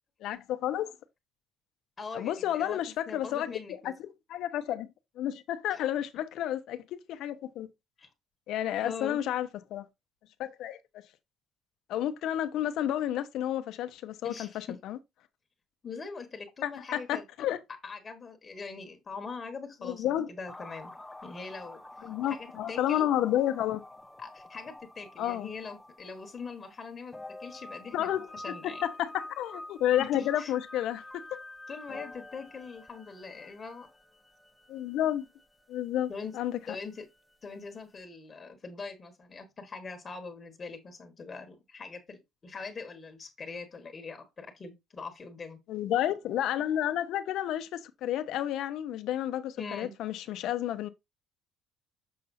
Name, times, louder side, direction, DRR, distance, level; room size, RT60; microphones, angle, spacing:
voice 1, 0.2-0.9 2.1-3.5 3.8-4.9 5.2-7.7 8.5-9.9 10.4-10.8 11.9-15.0 16.6-17.6 19.8-20.3 22.0-23.8 25.2-25.5 27.9-28.3 28.6-31.4 34.7-35.2 35.7-36.6 45.7-50.9, left 11 dB, 70° left, 0.8 m, -31 dB
voice 2, 2.0-2.8 3.1-3.9 5.7-5.8 8.0-8.1 8.8-9.2 14.2-14.8 15.8-17.2 17.8-20.9 21.2-21.8 22.3-23.1 24.2-28.8 30.0-30.5 31.7-33.9 36.1-36.3 36.7-37.1 37.4-45.6 49.6-49.9, left 4 dB, 30° left, 1.3 m, -42 dB
sound 1, 20.5-37.6 37.9-38.0, left 1 dB, 10° left, 0.6 m, -48 dB
6.6 x 5.5 x 2.6 m
cardioid pair, 130°, 0 cm